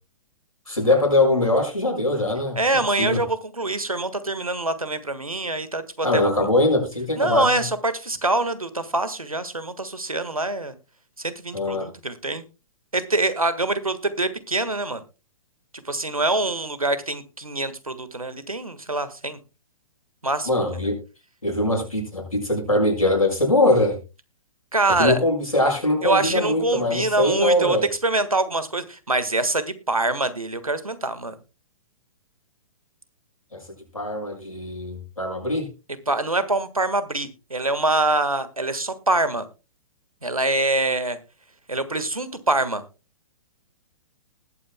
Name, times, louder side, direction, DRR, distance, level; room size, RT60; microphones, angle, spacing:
voice 1, 0.7-2.6 3.0-3.2 6.0-7.6 11.5-11.9 20.5-21.0 21.4-24.0 25.0-27.9 33.5-33.6 33.9-35.7, left 1 dB, 85° left, 1 dB, 6.6 m, -22 dB
voice 2, 2.5-6.3 7.2-10.7 11.2-12.4 12.9-15.0 15.8-19.4 20.2-20.5 24.7-25.2 26.0-27.8 28.0-31.3 36.1-39.5 40.2-41.2 41.7-42.8, right 2 dB, 90° right, 12 dB, 1.6 m, -24 dB
20.0 x 8.8 x 2.2 m, 0.29 s
figure-of-eight pair, 120°, 18 cm